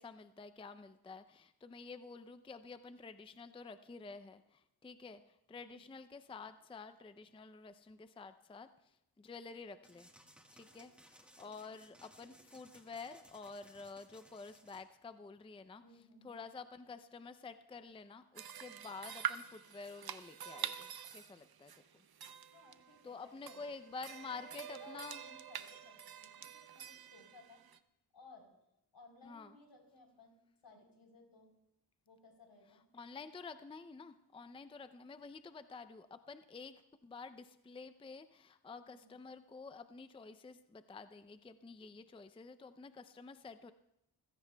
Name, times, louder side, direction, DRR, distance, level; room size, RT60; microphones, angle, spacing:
voice 1, 0.0-10.1 10.5-15.8 16.2-22.0 23.0-25.2 29.2-29.6 32.7-43.7, left 4 dB, 15° left, 11 dB, 0.4 m, -50 dB
sound 1, 9.8-14.8, equal, 5° right, 1.3 m, -62 dB
voice 2, 11.4-11.7 15.8-16.4 22.4-23.7 24.1-27.6 28.1-28.5 28.9-31.5 32.1-32.8 38.8-39.2, left 3 dB, 80° left, 1 dB, 3.6 m, -60 dB
sound 2, 18.4-27.8, right 8 dB, 60° right, 0.7 m, -46 dB
29.0 x 16.0 x 2.2 m, 0.82 s
wide cardioid pair, 100°, 42 cm